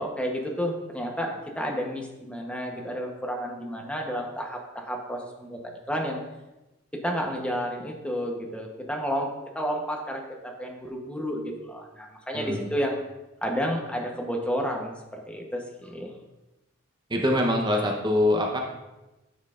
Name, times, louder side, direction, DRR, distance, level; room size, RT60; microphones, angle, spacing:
voice 1, 0.0-6.2 7.0-13.0 13.4-16.1, equal, 5° left, 1 dB, 0.9 m, -31 dB
voice 2, 17.1-18.6, left 1 dB, 20° right, 0 dB, 0.8 m, -24 dB
9.8 x 6.4 x 2.5 m, 1.0 s
head